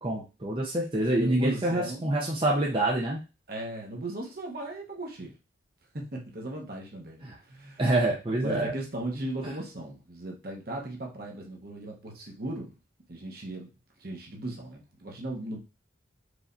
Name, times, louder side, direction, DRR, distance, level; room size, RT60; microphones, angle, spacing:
voice 1, 0.0-3.2 7.2-7.4 7.8-8.7, right 1 dB, 25° right, -3 dB, 0.6 m, -26 dB
voice 2, 1.2-2.1 3.5-5.3 5.9-7.8 8.4-12.7 13.1-13.7 14.0-15.6, right 1 dB, 50° right, 0 dB, 1.1 m, -37 dB
4.8 x 3.2 x 2.6 m, 0.30 s
head